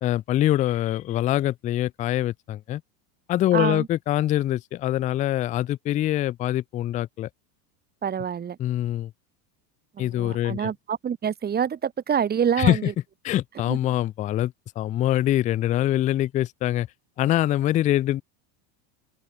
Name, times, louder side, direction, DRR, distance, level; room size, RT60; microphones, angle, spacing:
voice 1, 0.0-2.8 3.3-7.3 8.6-9.1 10.0-10.7 12.6-12.8 13.2-16.9 17.2-18.2, left 13 dB, 20° left, 0.3 m, -24 dB
voice 2, 3.5-3.9 8.0-8.6 9.9-12.9 13.7-13.8, right 8 dB, 20° right, 1.6 m, -26 dB
supercardioid pair, 140°, 47 cm